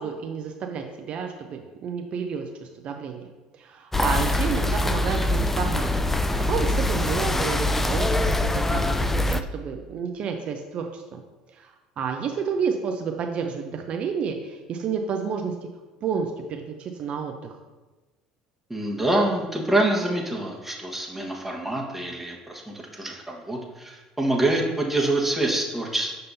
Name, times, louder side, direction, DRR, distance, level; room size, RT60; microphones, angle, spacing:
voice 1, 0.0-3.2 3.6-5.9 6.5-11.2 11.6-11.7 12.0-15.5 16.0-17.5, right 6 dB, 55° right, 4 dB, 0.6 m, -30 dB
sound 1, 3.9-9.4, left 1 dB, 10° left, 0.4 m, -23 dB
voice 2, 18.7-26.2, right 1 dB, 10° right, -1 dB, 1.4 m, -26 dB
6.7 x 5.3 x 2.7 m, 1.2 s
hypercardioid pair, 75°, 2 cm